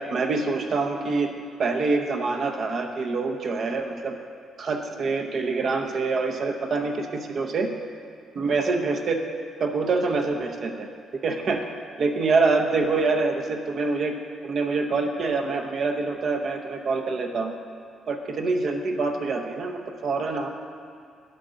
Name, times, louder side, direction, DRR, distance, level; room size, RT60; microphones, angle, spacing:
voice 1, 0.1-1.3 1.6-4.1 4.6-7.7 8.3-9.2 9.6-10.9 11.2-11.6 12.0-14.2 14.4-17.5 18.1-20.5, right 3 dB, 55° right, 4 dB, 0.8 m, -25 dB
10.5 x 3.8 x 6.3 m, 2.4 s
cardioid pair, 90°, 0 cm